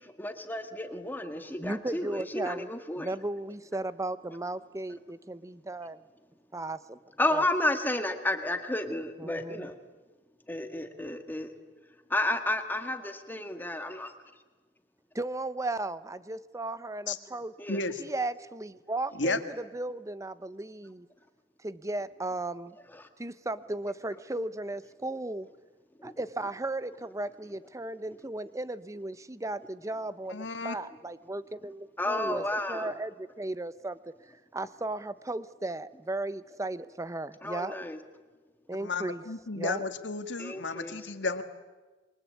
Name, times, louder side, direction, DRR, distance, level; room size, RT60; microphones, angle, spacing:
voice 1, 0.2-3.1 7.2-9.8 10.5-11.5 12.1-14.1 17.6-17.8 22.9-23.1 26.0-26.1 32.0-32.9 37.4-38.0 40.4-41.1, left 1 dB, 10° left, 7 dB, 1.7 m, -32 dB
voice 2, 1.6-6.0 6.5-7.0 7.3-7.5 9.2-9.7 15.2-17.5 18.0-21.1 21.6-22.8 23.2-25.5 26.0-37.8 38.7-39.2 39.5-39.9, right 2 dB, 15° right, 15 dB, 0.7 m, -36 dB
voice 3, 30.3-30.8 38.8-41.4, left 3 dB, 85° left, 8 dB, 1.9 m, -32 dB
27.0 x 23.0 x 8.5 m, 1.3 s
head